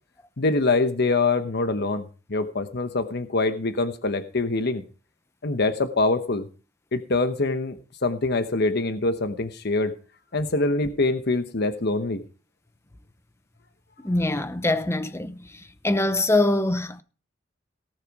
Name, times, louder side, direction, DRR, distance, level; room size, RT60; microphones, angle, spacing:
voice 1, 0.4-4.8 5.4-6.5 6.9-9.9 10.3-12.2, left 3 dB, 60° left, 1.0 m, -24 dB
voice 2, 14.0-15.4 15.8-17.0, left 2 dB, 15° left, 0.9 m, -23 dB
18.0 x 6.6 x 4.8 m
head